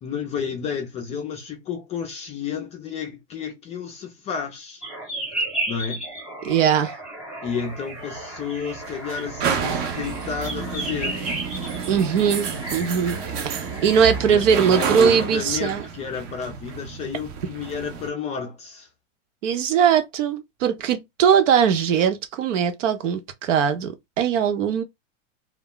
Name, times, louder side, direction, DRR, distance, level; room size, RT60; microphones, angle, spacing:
voice 1, 0.0-4.8 5.7-6.1 7.4-11.2 14.2-18.9, left 6 dB, 20° left, 0.4 m, -31 dB
sound 1, 4.8-14.6, right 1 dB, 5° right, 0.9 m, -34 dB
voice 2, 6.4-6.9 11.9-15.8 19.4-24.8, right 7 dB, 75° right, 0.8 m, -20 dB
sound 2, 7.5-18.1, right 6 dB, 40° right, 0.6 m, -30 dB
2.3 x 2.0 x 3.7 m
supercardioid pair, 130°, 38 cm